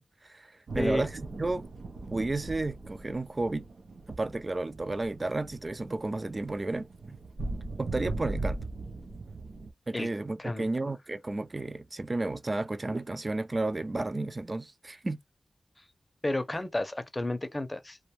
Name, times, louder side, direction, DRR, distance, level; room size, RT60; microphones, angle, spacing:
voice 1, 0.0-1.7 2.1-3.7 4.1-7.2 7.8-8.6 9.9-15.2, right 2 dB, 35° right, 0.3 m, -32 dB
voice 2, 0.7-1.1 9.9-10.1 10.4-10.7 16.2-18.0, left 1 dB, 25° left, 0.6 m, -31 dB
sound 1, 0.7-9.7, right 2 dB, 90° right, 0.5 m, -39 dB
2.5 x 2.2 x 2.9 m
wide cardioid pair, 90°, 0 cm